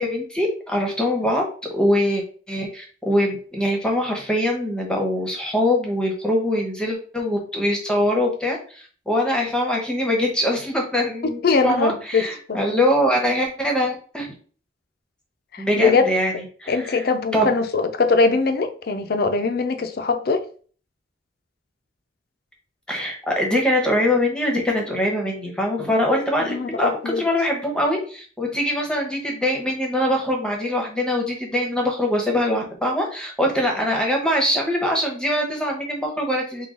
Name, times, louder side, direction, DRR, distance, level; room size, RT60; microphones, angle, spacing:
voice 1, 0.0-1.5 1.7-14.3 15.6-17.0 17.3-17.5 22.9-26.9 27.2-36.7, left 1 dB, 5° left, 0.8 m, -23 dB
voice 2, 11.4-12.6 15.5-16.1 16.7-20.4 26.4-27.2, left 4 dB, 50° left, 0.5 m, -21 dB
3.7 x 2.3 x 3.7 m
head